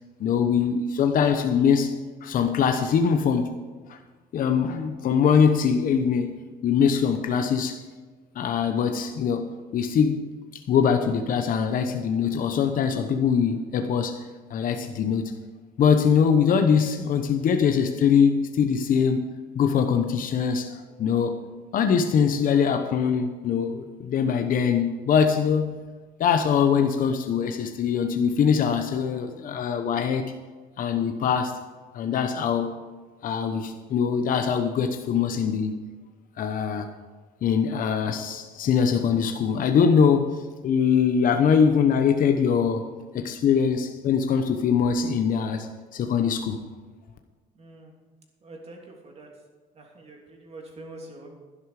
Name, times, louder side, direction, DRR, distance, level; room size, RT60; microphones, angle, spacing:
voice 1, 0.2-1.9 2.2-3.5 3.9-4.0 4.3-6.3 6.6-7.8 8.3-10.2 10.5-15.3 15.8-19.3 19.5-21.4 21.7-25.8 26.2-30.3 30.8-31.6 31.9-32.8 33.2-35.7 36.4-36.9 37.4-42.9 43.1-46.6, left 7 dB, 55° left, 6 dB, 1.0 m, -23 dB
voice 2, 47.5-47.9 48.4-49.3 49.7-51.3, right 2 dB, 40° right, 0 dB, 3.2 m, -45 dB
11.5 x 11.0 x 5.0 m, 1.4 s
cardioid pair, 110°, 17 cm